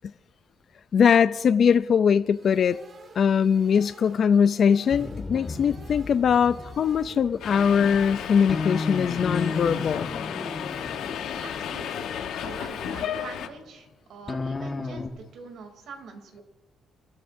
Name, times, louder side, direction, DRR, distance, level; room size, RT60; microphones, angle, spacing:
voice 1, 0.9-2.8 3.2-10.1, left 7 dB, 55° left, 0.4 m, -21 dB
sound 1, 2.3-13.3, right 4 dB, 55° right, 2.8 m, -51 dB
sound 2, 4.9-13.2 14.3-15.1, left 3 dB, 30° left, 1.5 m, -34 dB
Subway metro underground, 7.4-13.5, left 8 dB, 80° left, 1.1 m, -33 dB
voice 2, 11.4-16.4, right 4 dB, 75° right, 3.0 m, -44 dB
29.0 x 13.0 x 2.7 m
cardioid pair, 90°, 0 cm